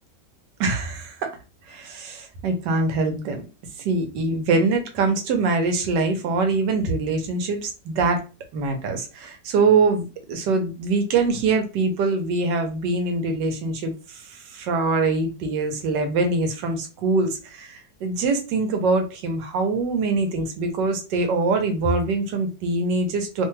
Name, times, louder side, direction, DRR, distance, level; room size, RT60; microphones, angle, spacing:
voice 1, 0.6-1.4 1.7-3.4 3.8-8.2 8.5-23.5, right 3 dB, 80° right, 5 dB, 1.4 m, -23 dB
3.1 x 2.2 x 3.1 m, 0.32 s
omnidirectional pair, 1.9 m